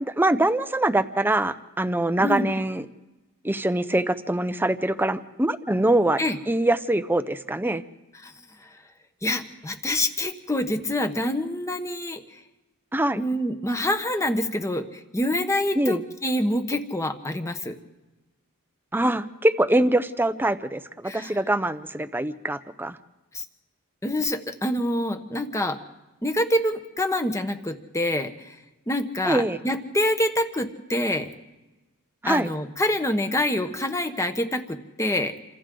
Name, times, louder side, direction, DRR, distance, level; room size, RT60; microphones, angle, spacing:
voice 1, 0.2-2.8 3.4-6.2 6.5-7.8 12.9-13.2 15.8-16.0 18.9-23.0 29.2-29.6 32.2-32.5, right 1 dB, 10° right, 11 dB, 0.7 m, -23 dB
voice 2, 9.2-12.2 13.1-17.8 21.0-21.4 23.3-23.4 24.0-25.8 26.2-28.5 28.9-31.3 32.2-35.3, left 1 dB, 15° left, 7 dB, 1.2 m, -26 dB
28.0 x 25.5 x 3.8 m, 1.1 s
head